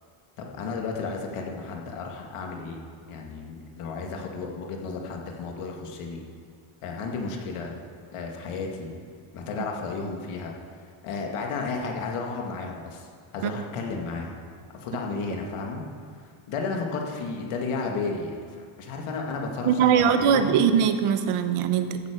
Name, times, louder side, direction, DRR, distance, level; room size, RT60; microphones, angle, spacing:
voice 1, 0.4-6.2 6.8-7.7 8.1-9.0 9.3-10.5 11.0-13.1 13.3-14.4 14.7-15.8 16.5-20.6, left 4 dB, 85° left, 1 dB, 2.1 m, -33 dB
voice 2, 19.7-22.0, right 8 dB, 85° right, 9 dB, 1.1 m, -21 dB
15.0 x 9.5 x 5.1 m, 2.1 s
cardioid pair, 160°, 50 cm